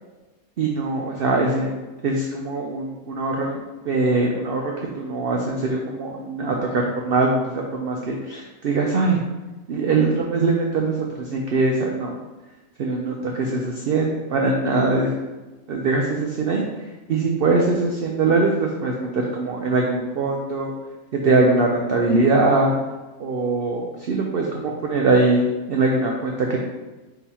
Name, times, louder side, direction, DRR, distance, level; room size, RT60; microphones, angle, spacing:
voice 1, 0.6-1.7 2.0-9.2 9.7-12.1 12.8-15.1 15.7-16.6 17.1-20.7 21.2-22.7 23.2-25.4 25.7-26.6, right 3 dB, 75° right, 0 dB, 0.5 m, -22 dB
3.9 x 2.8 x 4.1 m, 1.2 s
omnidirectional pair, 1.5 m